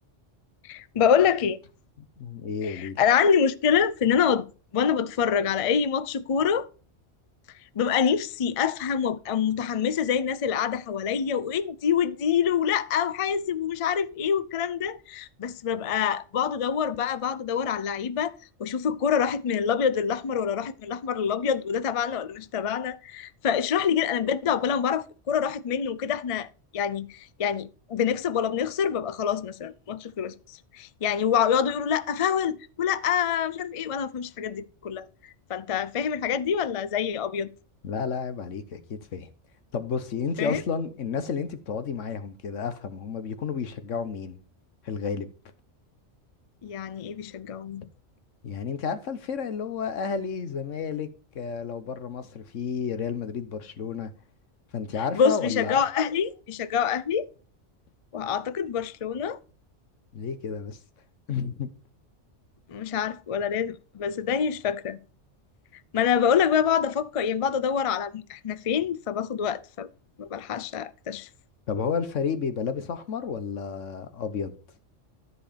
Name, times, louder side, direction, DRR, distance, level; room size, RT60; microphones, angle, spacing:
voice 1, 0.6-1.6 2.6-4.5 4.7-6.7 7.8-18.3 18.6-26.5 26.7-30.3 30.7-35.1 35.5-37.5 40.4-40.6 46.6-47.8 55.1-57.3 58.1-59.4 62.7-65.0 65.9-69.9 70.2-71.3, left 7 dB, 45° left, 0.4 m, -26 dB
voice 2, 2.0-3.0 37.8-39.3 39.7-44.4 44.8-45.3 48.4-51.1 51.3-54.1 54.7-55.8 60.1-60.8 61.3-61.7 71.7-74.5, left 6 dB, 85° left, 1.4 m, -31 dB
13.0 x 4.8 x 5.1 m
omnidirectional pair, 1.3 m